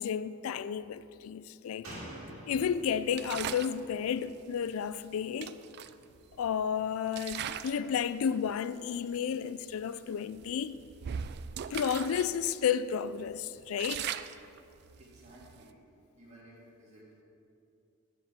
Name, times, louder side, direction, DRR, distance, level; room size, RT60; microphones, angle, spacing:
voice 1, 0.0-1.9 2.5-5.6 6.4-10.8 11.7-14.1, left 7 dB, 70° left, 0.3 m, -32 dB
Slam, 1.8-5.3 5.6-5.7, right 1 dB, 75° right, 2.5 m, -48 dB
sound 1, 3.1-3.8 4.9-5.0 5.4-6.6 7.1-7.9 8.2-8.5 9.2-9.3 9.6-9.8 10.4-12.3 12.6-12.7 13.2-15.7, right 9 dB, 50° right, 0.3 m, -39 dB
voice 2, 15.0-15.7 16.2-17.2, right 1 dB, 30° right, 2.5 m, -55 dB
7.2 x 6.3 x 7.5 m
head